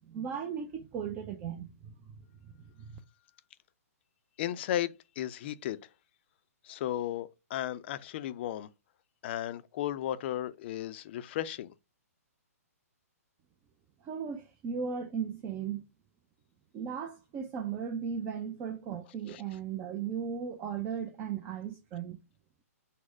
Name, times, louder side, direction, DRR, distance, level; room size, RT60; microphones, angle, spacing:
voice 1, 0.0-1.9 2.8-3.0 14.0-15.8 16.7-22.2, right 7 dB, 25° right, 0.5 m, -36 dB
voice 2, 4.4-5.8 6.6-8.7 9.2-11.7 19.3-19.4, left 12 dB, 45° left, 0.4 m, -35 dB
4.1 x 2.1 x 4.4 m
hypercardioid pair, 125°, 8 cm